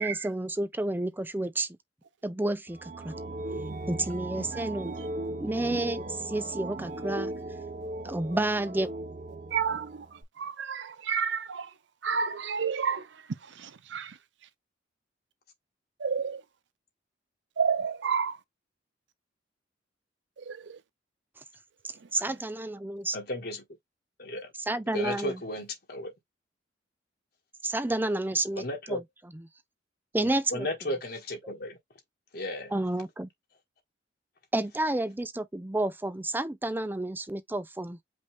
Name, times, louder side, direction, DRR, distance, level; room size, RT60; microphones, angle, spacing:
voice 1, 0.0-1.7 2.2-3.1 3.9-4.9 5.4-7.3 8.0-8.9 21.8-23.2 24.7-25.4 27.6-29.0 30.1-30.7 31.4-31.5 32.7-33.3 34.5-38.0, right 2 dB, 10° right, 0.5 m, -30 dB
sound 1, 2.7-10.2, right 2 dB, 40° right, 0.8 m, -38 dB
voice 2, 4.5-5.1 5.7-5.8 9.5-11.7 12.0-14.2 16.0-16.4 17.6-18.4 20.5-20.8 22.0-22.3, right 6 dB, 80° right, 0.6 m, -31 dB
voice 3, 23.1-23.6 24.2-24.5 24.9-26.1 28.6-29.0 30.2-31.8 32.3-32.7, left 1 dB, 60° left, 1.4 m, -34 dB
5.3 x 2.6 x 3.5 m
head